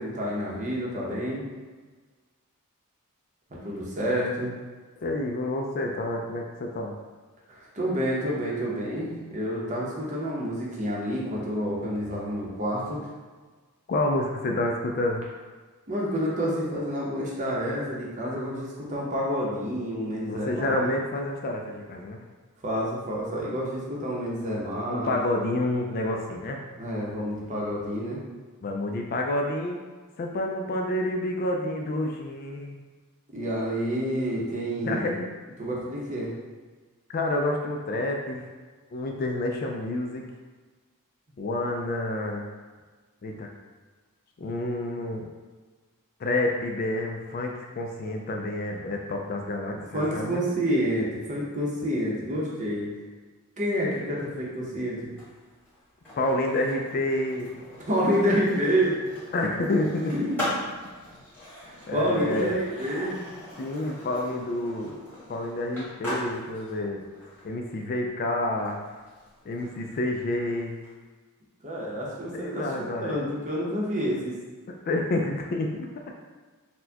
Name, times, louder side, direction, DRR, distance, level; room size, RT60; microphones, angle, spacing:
voice 1, 0.0-1.5 3.5-4.5 7.5-13.0 15.9-20.8 22.6-25.2 26.8-28.2 33.3-35.1 35.6-36.3 49.9-52.9 53.6-55.1 57.9-59.0 60.1-60.4 61.6-63.2 64.8-64.9 71.6-74.3, equal, 35° right, -4 dB, 0.8 m, -28 dB
voice 2, 5.0-6.9 13.9-15.2 20.3-22.2 24.9-26.6 28.6-29.8 30.2-32.8 34.8-35.3 37.1-38.5 38.9-40.2 41.4-42.5 43.2-43.5 44.4-45.3 46.2-50.4 56.2-57.5 59.3-60.4 61.9-62.6 63.6-65.0 65.3-67.0 67.4-68.8 69.5-70.8 72.3-73.2 74.7-76.1, left 1 dB, 40° left, 2 dB, 0.4 m, -29 dB
Skateboard, 55.0-70.9, left 1 dB, 10° left, 1.4 m, -40 dB
4.2 x 2.2 x 2.8 m, 1.4 s
head